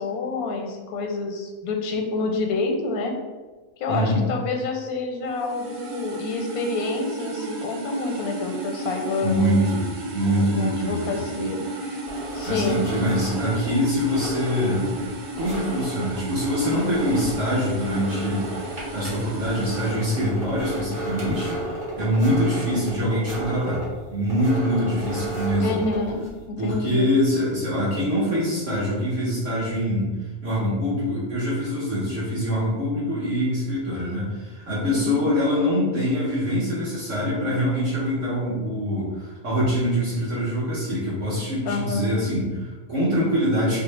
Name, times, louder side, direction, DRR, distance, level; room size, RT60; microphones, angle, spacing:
voice 1, 0.0-3.1 3.8-9.5 10.4-12.0 12.3-12.9 25.6-26.2 26.6-27.1 34.9-35.2 41.6-42.1, left 3 dB, 85° left, 3 dB, 1.1 m, -28 dB
voice 2, 3.9-4.2 9.2-9.9 10.1-11.0 12.4-15.0 15.4-18.5 18.9-23.8 24.1-25.8 26.6-30.1 30.4-43.8, equal, 60° right, -8 dB, 1.3 m, -24 dB
sound 1, 5.3-20.0, right 3 dB, 75° right, 1.2 m, -34 dB
sound 2, 12.1-26.4, right 1 dB, 25° right, 1.3 m, -34 dB
5.0 x 2.1 x 3.2 m, 1.3 s
omnidirectional pair, 1.5 m